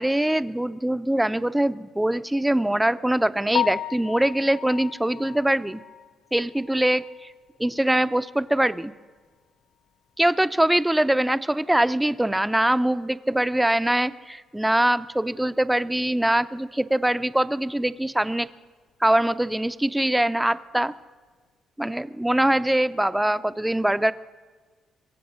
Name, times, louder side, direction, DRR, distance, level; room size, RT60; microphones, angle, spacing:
voice 1, 0.0-5.8 6.3-7.3 7.6-8.9 10.2-18.5 19.0-20.9 21.8-24.1, right 1 dB, 5° right, 14 dB, 0.5 m, -23 dB
Piano, 3.5-7.5 7.9-8.0 8.5-8.6 8.9-9.0 12.1-12.2 20.7-20.9, left 10 dB, 80° left, 0.5 m, -34 dB
22.5 x 7.8 x 6.2 m, 1.4 s
cardioid pair, 90°, 0 cm